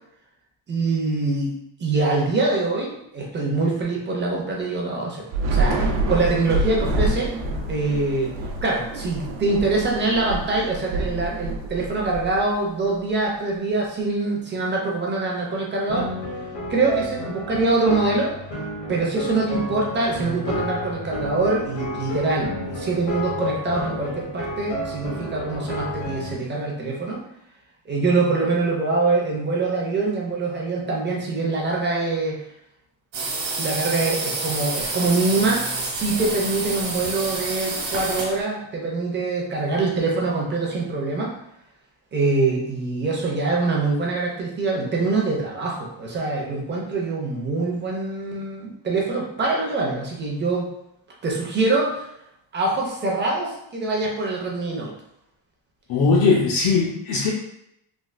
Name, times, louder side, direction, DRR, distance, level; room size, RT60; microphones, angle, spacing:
voice 1, 0.7-1.6 1.8-5.2 5.5-7.3 7.7-8.3 8.6-16.1 16.7-18.3 18.9-27.2 27.9-32.4 33.6-41.3 42.1-50.7 51.2-52.1 52.5-54.9, right 3 dB, 25° right, -2 dB, 0.4 m, -24 dB
Thunder / Rain, 5.3-12.8, right 2 dB, 90° right, 0.7 m, -27 dB
sound 1, 15.9-26.3, left 1 dB, 75° left, 1.3 m, -31 dB
sound 2, 33.1-38.4, right 3 dB, 70° right, 1.0 m, -28 dB
voice 2, 55.9-57.3, left 4 dB, 55° left, -4 dB, 0.5 m, -19 dB
3.4 x 2.3 x 2.4 m, 0.78 s
cardioid pair, 175°, 45 cm